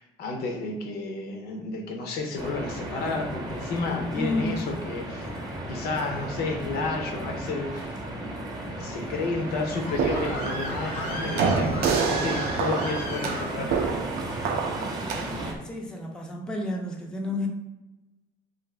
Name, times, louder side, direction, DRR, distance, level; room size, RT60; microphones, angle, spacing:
voice 1, 0.0-5.3 5.7-8.0 8.8-13.8, left 3 dB, 70° left, 3 dB, 0.6 m, -31 dB
sound 1, 2.4-15.5, right 1 dB, 25° right, 0.7 m, -35 dB
voice 2, 4.1-4.6 15.6-17.5, left 2 dB, 5° left, 0 dB, 0.4 m, -30 dB
Screaming, 9.4-13.9, left 1 dB, 85° left, 0.9 m, -36 dB
sound 2, 9.7-15.5, right 5 dB, 70° right, 0.4 m, -28 dB
2.6 x 2.5 x 3.1 m, 1.1 s
cardioid pair, 110°, 17 cm